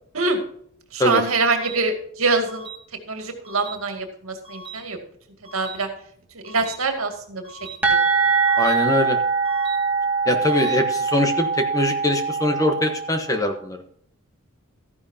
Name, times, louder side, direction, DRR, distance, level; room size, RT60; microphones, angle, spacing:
voice 1, 0.9-2.7 3.1-5.0 5.5-5.9 6.3-7.4 7.9-8.0, right 3 dB, 75° right, 5 dB, 2.2 m, -24 dB
sound 1, 1.4-1.8 2.4-2.8 3.4-3.8 4.4-4.8 5.4-5.8 6.4-6.8 7.4-7.8 8.4-8.8 9.4-9.8 10.4-10.8, right 4 dB, 25° right, 2.9 m, -39 dB
sound 2, 7.8-13.4, right 5 dB, 5° right, 2.0 m, -22 dB
voice 2, 8.6-9.2 10.3-13.8, left 1 dB, 15° left, 5 dB, 1.1 m, -22 dB
14.0 x 10.5 x 2.8 m, 0.64 s
head